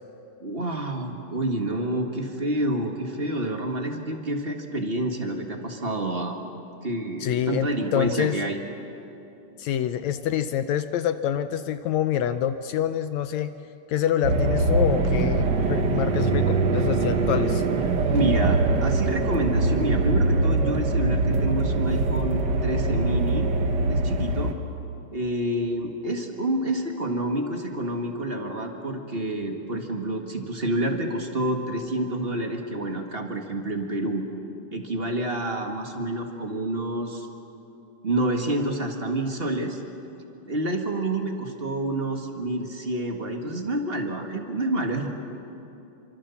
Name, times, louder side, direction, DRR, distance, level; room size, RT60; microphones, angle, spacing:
voice 1, 0.4-6.4 6.8-8.6 18.1-23.5 23.9-24.5 25.1-34.2 34.7-37.3 38.0-39.8 40.4-45.1, right 1 dB, 30° right, 3 dB, 1.0 m, -28 dB
voice 2, 7.2-8.3 9.6-13.5 13.9-17.6, left 10 dB, 75° left, 11 dB, 1.7 m, -26 dB
sound 1, 14.2-24.5, right 3 dB, 55° right, 1.2 m, -23 dB
28.5 x 25.0 x 7.1 m, 2.9 s
omnidirectional pair, 3.8 m